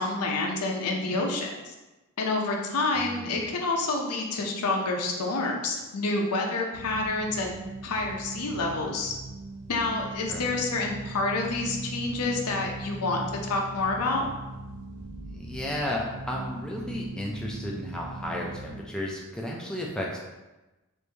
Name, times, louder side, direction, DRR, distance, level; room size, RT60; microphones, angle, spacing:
voice 1, 0.0-1.7 2.2-7.5 7.8-9.1 9.7-14.3, left 3 dB, 90° left, 1 dB, 0.6 m, -28 dB
voice 2, 3.0-3.4 10.3-10.4 15.3-20.2, left 1 dB, 5° left, -3 dB, 0.3 m, -33 dB
sound 1, 6.7-18.8, right 2 dB, 80° right, 0.5 m, -40 dB
3.1 x 2.6 x 3.3 m, 1.1 s
head